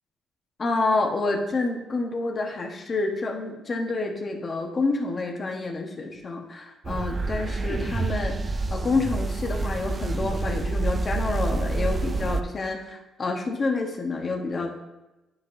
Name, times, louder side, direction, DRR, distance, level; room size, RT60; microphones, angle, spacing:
voice 1, 0.6-8.3 8.7-14.7, left 3 dB, 40° left, 2 dB, 1.3 m, -28 dB
sound 1, 6.8-12.4, right 3 dB, 35° right, 0.5 m, -28 dB
10.5 x 5.5 x 2.7 m, 1.0 s
cardioid pair, 90°, 0 cm